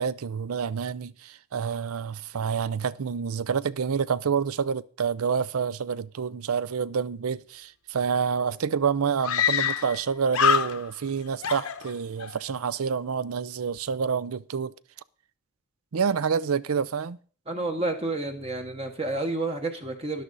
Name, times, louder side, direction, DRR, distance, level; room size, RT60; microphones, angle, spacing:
voice 1, 0.0-14.7 15.9-17.2, right 6 dB, 80° right, 0.5 m, -28 dB
Screaming, 8.1-8.2 8.4-8.5 9.2-10.0 10.3-11.1 11.4-12.3, left 8 dB, 75° left, 1.0 m, -25 dB
voice 2, 17.5-20.2, right 2 dB, 25° right, 0.9 m, -30 dB
13.0 x 11.0 x 4.0 m
head